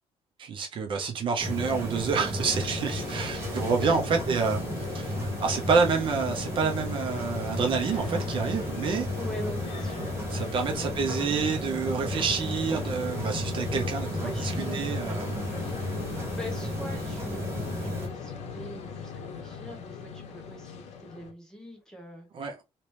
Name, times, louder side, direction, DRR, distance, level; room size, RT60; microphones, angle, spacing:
voice 1, 0.4-4.6 4.9-9.1 10.3-15.6 22.3-22.6, right 5 dB, 50° right, 0.6 m, -28 dB
sound 1, 1.4-18.1, equal, 20° right, 1.2 m, -33 dB
sound 2, 2.4-21.3, left 6 dB, 90° left, 0.7 m, -40 dB
voice 2, 3.3-4.2 9.1-10.1 10.8-11.2 14.2-15.0 16.3-22.3, left 1 dB, 5° left, 1.0 m, -43 dB
3.0 x 2.9 x 3.2 m
cardioid pair, 165°, 11 cm